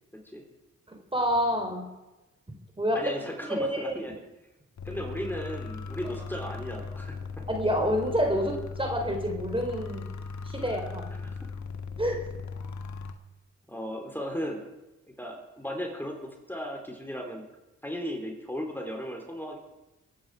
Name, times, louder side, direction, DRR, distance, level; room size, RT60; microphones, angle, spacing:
voice 1, 0.1-0.4 2.9-4.1 4.8-7.4 11.1-11.2 13.7-14.6 15.1-17.4 17.8-19.6, equal, 5° left, 1 dB, 3.6 m, -36 dB
voice 2, 0.9-1.9 2.5-3.0 3.5-3.9 7.5-10.0 10.5-11.1 12.0-12.3, equal, 15° right, 3 dB, 3.8 m, -28 dB
sound 1, 4.8-13.1, left 4 dB, 65° left, 1.6 m, -38 dB
24.0 x 9.5 x 4.9 m, 1.0 s
cardioid pair, 50°, 30 cm